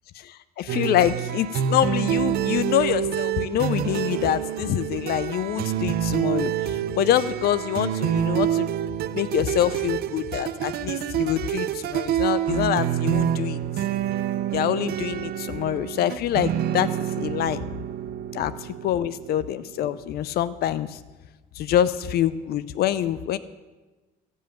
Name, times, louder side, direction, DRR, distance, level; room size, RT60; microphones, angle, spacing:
voice 1, 0.2-8.7 9.1-13.6 14.5-17.6 18.3-21.0 21.5-23.4, left 11 dB, 65° left, 15 dB, 0.5 m, -25 dB
sound 1, 0.7-20.0, right 10 dB, 65° right, 0.6 m, -27 dB
15.5 x 5.5 x 9.0 m, 1.2 s
cardioid pair, 110°, 17 cm